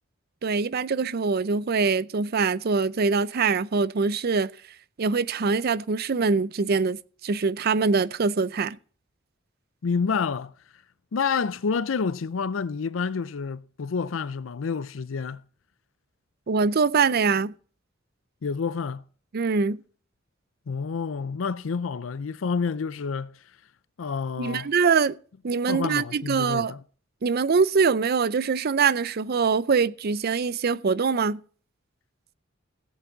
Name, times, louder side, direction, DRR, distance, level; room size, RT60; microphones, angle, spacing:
voice 1, 0.4-4.5 5.0-8.8 16.5-17.5 19.3-19.8 24.4-25.2 25.4-26.7 27.2-31.4, right 5 dB, 55° right, 0.5 m, -23 dB
voice 2, 9.8-10.5 11.1-15.4 18.4-19.0 20.7-23.4 24.0-24.7 25.7-26.8, left 5 dB, 85° left, 0.5 m, -28 dB
16.0 x 8.5 x 3.9 m
head